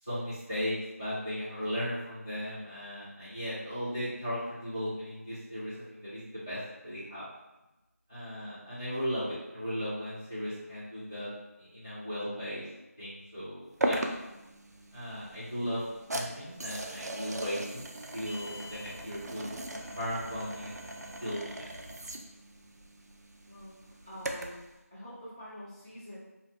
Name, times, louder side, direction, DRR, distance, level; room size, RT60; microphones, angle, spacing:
voice 1, 0.0-7.2 8.1-11.3 11.6-12.6 13.0-14.0 14.9-15.8 16.1-17.9 18.1-19.5 19.9-20.7 21.2-21.7, equal, 15° left, -14 dB, 0.7 m, -36 dB
sound 1, 13.8-24.7, right 1 dB, 85° right, 0.4 m, -39 dB
voice 2, 23.5-26.2, equal, 20° right, -12 dB, 0.4 m, -47 dB
2.7 x 2.0 x 2.8 m, 1.0 s
figure-of-eight pair, 175°, 9 cm